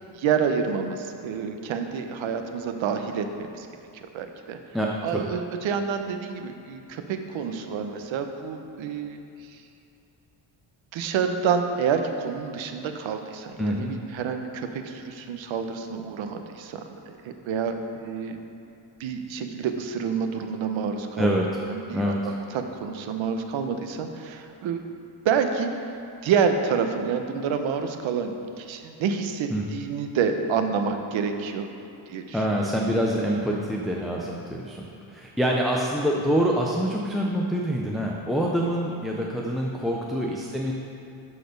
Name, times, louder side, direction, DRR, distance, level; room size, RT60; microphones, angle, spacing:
voice 1, 0.2-3.3 3.5-3.7 4.1-4.6 5.0-9.2 10.9-18.4 19.0-21.3 21.7-24.8 25.2-25.7 26.2-31.7 32.1-32.7, right 6 dB, 70° right, 6 dB, 0.8 m, -28 dB
voice 2, 4.7-5.2 13.6-13.9 21.2-21.5 21.9-22.3 29.5-29.6 32.3-40.7, equal, ahead, -2 dB, 0.3 m, -26 dB
12.0 x 4.3 x 5.2 m, 2.6 s
cardioid pair, 150°, 48 cm